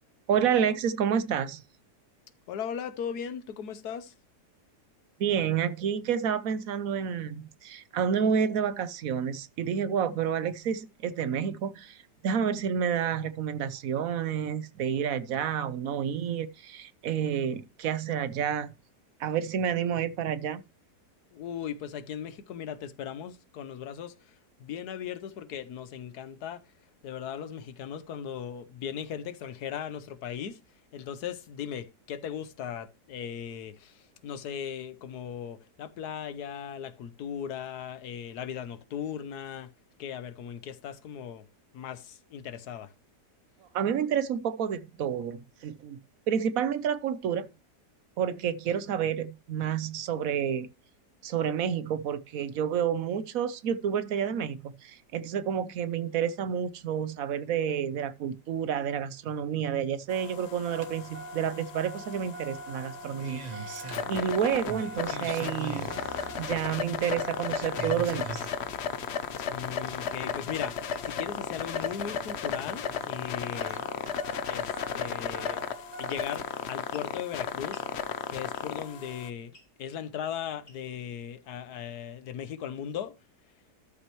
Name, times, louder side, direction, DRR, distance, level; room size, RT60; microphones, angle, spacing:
voice 1, 0.3-1.6 5.2-18.7 19.2-20.6 43.7-46.0 46.3-47.5 48.2-50.7 51.2-63.8 64.1-65.9 66.4-68.5, right 8 dB, 65° right, 1.0 m, -29 dB
voice 2, 2.5-4.1 21.3-24.3 24.6-26.6 27.0-30.6 30.9-39.7 40.0-41.5 41.7-42.9 69.5-73.9 74.5-75.6 76.0-77.8 78.3-79.5 79.8-83.1, left 8 dB, 75° left, 1.4 m, -38 dB
sound 1, 60.1-79.3, left 7 dB, 55° left, 0.8 m, -35 dB
Engine starting, 60.7-76.6 77.8-77.9, right 3 dB, 35° right, 0.8 m, -44 dB
sound 2, 70.1-70.2 70.8-71.1 71.8-72.0 73.6-73.9 74.4-74.6 75.3-75.6 76.1-76.4 76.9-77.1 77.7-77.9 78.5-78.8 79.5-79.7 80.6-81.0, left 1 dB, 35° left, 3.3 m, -56 dB
13.0 x 6.1 x 3.1 m
omnidirectional pair, 1.8 m